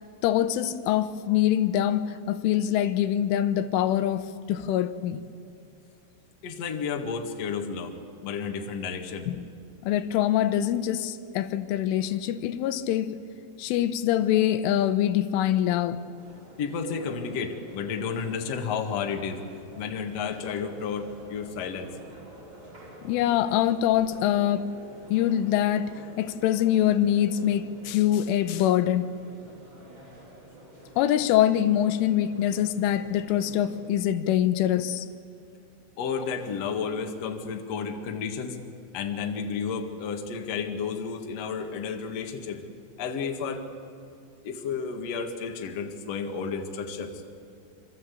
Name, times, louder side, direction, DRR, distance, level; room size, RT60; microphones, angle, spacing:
voice 1, 0.2-5.2 9.3-9.4 9.8-13.2 13.6-16.0 23.0-24.7 25.1-29.1 31.0-35.1, left 11 dB, 85° left, 3.4 m, -24 dB
voice 2, 6.4-9.3 16.6-19.5 19.8-22.0 36.0-38.6 38.9-42.6 43.0-43.7 44.4-47.2, left 6 dB, 50° left, 2.0 m, -32 dB
sound 1, 16.2-33.9, right 1 dB, 25° right, 4.7 m, -49 dB
26.5 x 26.0 x 8.4 m
omnidirectional pair, 5.5 m